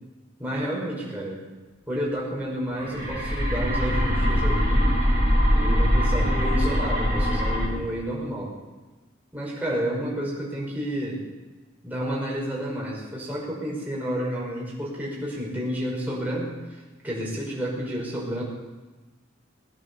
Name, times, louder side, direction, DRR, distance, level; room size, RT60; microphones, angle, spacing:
voice 1, 0.4-1.4 1.9-5.0 5.5-8.5 9.3-11.3 11.8-18.4, equal, 10° right, -5 dB, 5.4 m, -30 dB
sound 1, 2.7-7.7, equal, 30° left, 5.6 m, -22 dB
21.0 x 9.8 x 7.0 m, 1.2 s
head